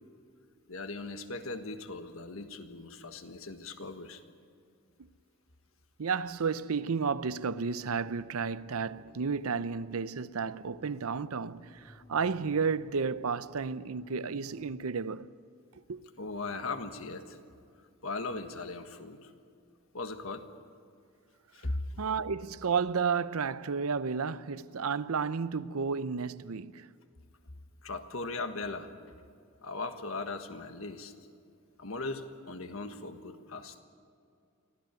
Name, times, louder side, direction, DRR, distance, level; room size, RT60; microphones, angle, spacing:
voice 1, 0.7-4.2 16.2-17.4 18.0-19.3 19.9-20.5 21.5-22.0 27.8-28.9 29.6-31.1 31.8-33.8, left 3 dB, 70° left, 1.5 m, -38 dB
voice 2, 6.0-15.3 15.7-16.0 22.0-26.9, right 5 dB, 80° right, 0.6 m, -32 dB
sound 1, 6.7-14.7, equal, 25° left, 2.8 m, -57 dB
24.0 x 16.0 x 9.1 m
head